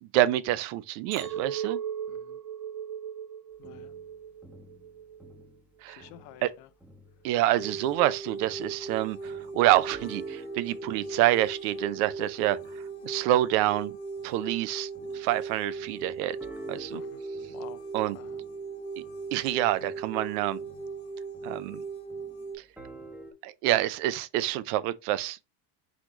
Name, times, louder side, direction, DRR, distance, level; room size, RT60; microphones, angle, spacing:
voice 1, 0.0-1.8 5.8-6.0 6.4-6.5 7.2-12.6 13.0-13.9 14.2-16.4 16.7-17.0 17.9-18.2 19.0-19.1 19.3-20.6 21.4-21.8 23.4-25.4, right 14 dB, 75° right, 0.6 m, -27 dB
Chink clink, 1.1-5.5 5.9-6.3, right 9 dB, 50° right, 1.1 m, -38 dB
voice 2, 2.1-2.4 3.6-3.9 5.9-6.7 16.9-17.2 17.5-17.8 18.1-18.4, left 14 dB, 80° left, 0.7 m, -50 dB
sound 1, 3.6-6.5 6.8-15.4 15.8-23.3, right 1 dB, 5° right, 0.8 m, -50 dB
sound 2, 7.5-22.6, right 4 dB, 40° left, 1.4 m, -39 dB
4.2 x 3.1 x 3.8 m
supercardioid pair, 120°, 46 cm